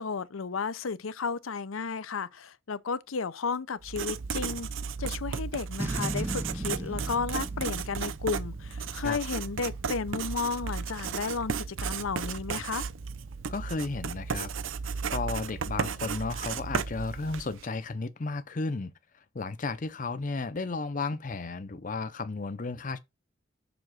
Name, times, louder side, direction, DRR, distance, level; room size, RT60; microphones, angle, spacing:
voice 1, 0.0-4.7 5.0-12.9, left 5 dB, 90° left, 0.6 m, -33 dB
Writing, 3.8-17.6, right 5 dB, 75° right, 0.6 m, -34 dB
Boom, 5.8-9.1, right 1 dB, 10° right, 0.6 m, -37 dB
voice 2, 13.5-14.5 15.1-18.9 19.3-23.0, left 3 dB, 40° left, 0.6 m, -33 dB
7.0 x 3.5 x 6.3 m
head